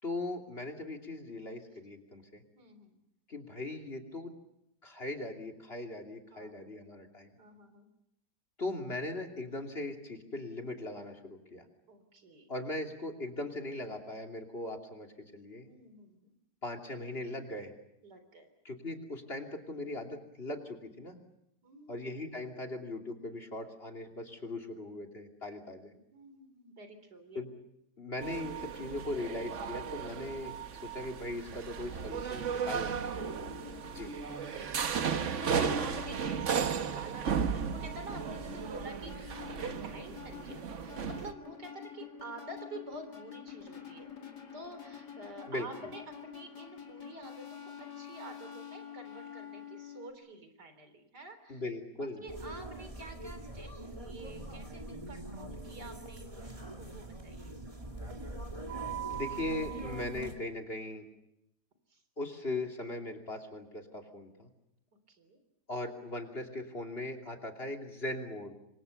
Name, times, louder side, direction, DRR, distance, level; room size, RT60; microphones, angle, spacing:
voice 1, 0.0-2.4 3.3-4.3 4.8-7.3 8.6-11.6 12.5-15.1 15.3-15.7 16.6-17.7 18.6-21.2 21.9-25.9 27.3-27.5 28.0-30.5 30.8-33.4 33.9-34.1 45.5-45.7 51.5-52.2 59.1-61.1 62.2-64.5 65.7-68.5, left 2 dB, 35° left, 3 dB, 3.1 m, -39 dB
voice 2, 2.5-3.0 6.3-6.6 7.4-7.9 11.9-12.5 15.6-16.3 18.0-18.5 21.6-22.2 26.1-27.4 33.5-34.1 34.5-44.1 44.5-51.6 52.0-57.6 61.9-62.0 65.1-65.4, right 2 dB, 75° right, 8 dB, 4.3 m, -49 dB
sound 1, 28.2-41.3, right 6 dB, 50° right, 1.3 m, -35 dB
sound 2, 32.0-50.1, left 6 dB, 75° left, 3.0 m, -48 dB
sound 3, 52.3-60.3, right 3 dB, 20° right, 2.5 m, -42 dB
28.0 x 24.0 x 6.8 m, 0.83 s
omnidirectional pair, 1.8 m